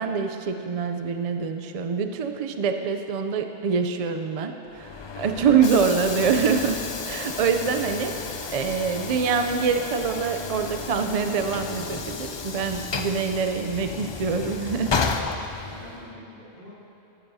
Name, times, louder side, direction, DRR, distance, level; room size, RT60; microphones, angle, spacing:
voice 1, 0.0-6.8 7.1-8.1 8.5-15.1, right 6 dB, 50° right, 6 dB, 0.4 m, -25 dB
Train / Sliding door, 4.7-16.1, left 5 dB, 45° left, 0.3 m, -32 dB
voice 2, 15.7-16.7, left 1 dB, 70° right, -8 dB, 3.0 m, -45 dB
15.0 x 12.5 x 2.7 m, 2.9 s
omnidirectional pair, 1.1 m